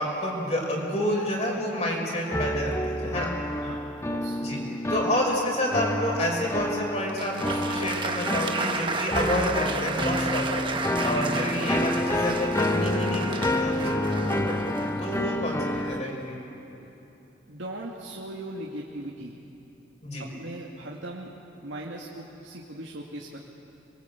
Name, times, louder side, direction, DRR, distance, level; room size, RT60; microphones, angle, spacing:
voice 1, 0.0-3.3 4.4-4.6 4.9-10.7 11.0-14.4 14.6-14.7 15.0-16.4 20.0-20.3, left 1 dB, 35° left, -1 dB, 5.3 m, -29 dB
sound 1, 2.3-16.0, left 1 dB, 15° left, 0.8 m, -29 dB
Applause, 7.1-16.0, right 4 dB, 25° right, 1.1 m, -33 dB
voice 2, 17.5-19.3 20.2-21.3 21.6-23.4, right 1 dB, 85° right, -2 dB, 2.3 m, -39 dB
27.0 x 23.0 x 8.4 m, 3.0 s
head